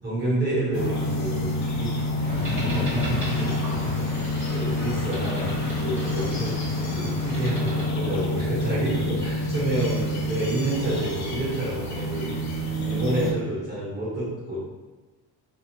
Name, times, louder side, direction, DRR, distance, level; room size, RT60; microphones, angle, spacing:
voice 1, 0.0-2.1 2.6-3.0 3.3-3.6 4.0-6.5 6.9-12.4 12.6-14.6, right 1 dB, 25° right, -10 dB, 1.1 m, -29 dB
sound 1, 0.7-13.3, left 1 dB, 45° left, 0.5 m, -28 dB
sound 2, 2.2-7.9, left 1 dB, 5° right, 1.1 m, -32 dB
2.6 x 2.3 x 3.0 m, 1.2 s
cardioid pair, 150°, 41 cm